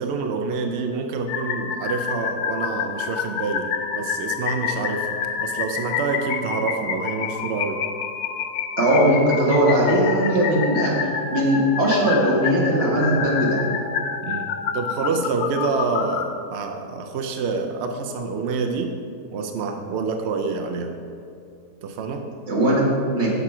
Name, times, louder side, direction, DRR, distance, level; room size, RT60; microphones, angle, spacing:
voice 1, 0.0-7.8 14.2-18.9 19.3-21.0 21.8-22.2, right 4 dB, 75° right, 4 dB, 0.6 m, -27 dB
sound 1, 1.3-16.3, left 7 dB, 75° left, 1.1 m, -28 dB
voice 2, 8.8-10.9 11.3-13.6 22.5-23.3, equal, 40° right, -3 dB, 1.7 m, -19 dB
6.6 x 6.0 x 4.8 m, 2.5 s
omnidirectional pair, 1.7 m